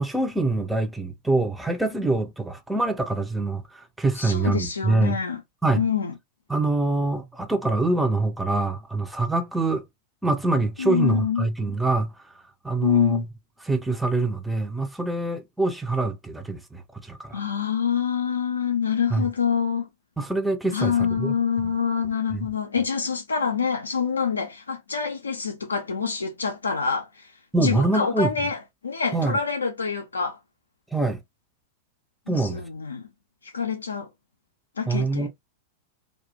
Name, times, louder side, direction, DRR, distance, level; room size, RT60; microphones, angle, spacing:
voice 1, 0.0-5.2 5.6-5.8 6.5-9.8 10.2-13.3 13.6-17.4 19.1-19.3 20.2-21.7 22.3-22.5 27.5-28.3 29.1-29.4 30.9-31.2 32.3-32.6 34.9-35.3, right 3 dB, 5° right, 0.4 m, -25 dB
voice 2, 4.2-5.4 5.7-6.1 10.8-11.5 12.8-13.2 17.3-19.9 20.7-27.3 27.6-28.6 28.8-30.4 32.3-33.1 33.5-34.1 34.8-35.3, left 6 dB, 75° left, 0.3 m, -26 dB
2.3 x 2.1 x 2.6 m
figure-of-eight pair, 90°, 0 cm